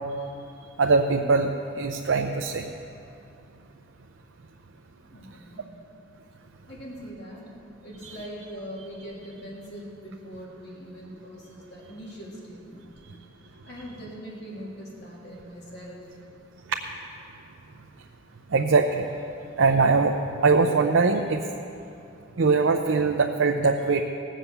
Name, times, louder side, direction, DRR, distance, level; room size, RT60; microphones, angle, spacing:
voice 1, 0.8-1.5 1.7-2.6 8.0-8.2 18.5-19.1 19.6-20.1 20.4-21.4 22.4-24.0, right 4 dB, 85° right, 3 dB, 0.6 m, -21 dB
voice 2, 5.1-5.7 6.7-7.6 7.8-13.0 13.6-16.1, equal, 60° left, -6 dB, 3.2 m, -41 dB
19.0 x 7.6 x 6.8 m, 2.7 s
head